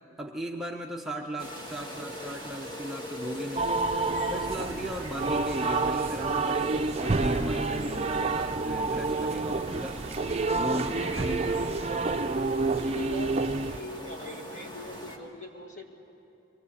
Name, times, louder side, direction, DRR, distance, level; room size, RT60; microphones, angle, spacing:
voice 1, 0.2-3.8 4.2-10.0 10.6-11.6 12.7-12.8, equal, ahead, 0 dB, 0.8 m, -37 dB
sound 1, 1.4-15.2, equal, 25° left, 1.9 m, -42 dB
sound 2, 3.6-13.8, right 3 dB, 30° right, 0.5 m, -28 dB
voice 2, 11.6-11.9 12.4-15.8, left 1 dB, 40° left, 2 dB, 2.1 m, -43 dB
23.5 x 19.5 x 8.6 m, 2.9 s
head